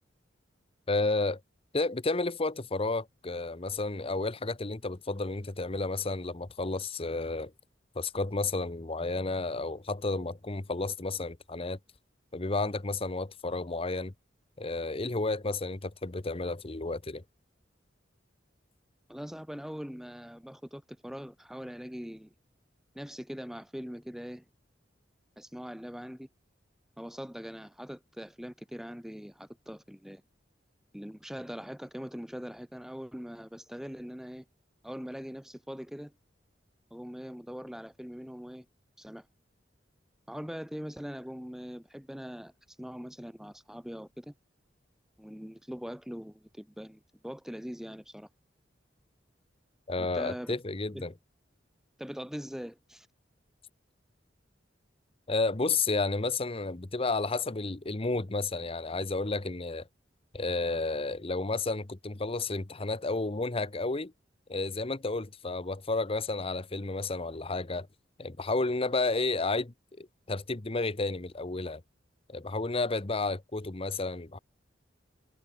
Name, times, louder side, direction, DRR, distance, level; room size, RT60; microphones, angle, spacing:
voice 1, 0.9-1.4 1.7-7.5 8.0-11.8 12.3-14.1 14.6-17.2 49.9-51.1 55.3-59.8 60.3-64.1 64.5-67.9 68.2-71.8 72.3-74.4, left 3 dB, 30° left, 1.0 m, -31 dB
voice 2, 19.1-22.3 22.9-24.4 25.4-26.3 27.0-30.2 30.9-34.4 34.8-36.1 36.9-38.7 39.0-39.3 40.3-42.5 42.8-44.3 45.2-48.3 50.1-50.6 50.9-51.1 52.0-53.1, equal, 5° right, 1.0 m, -42 dB
head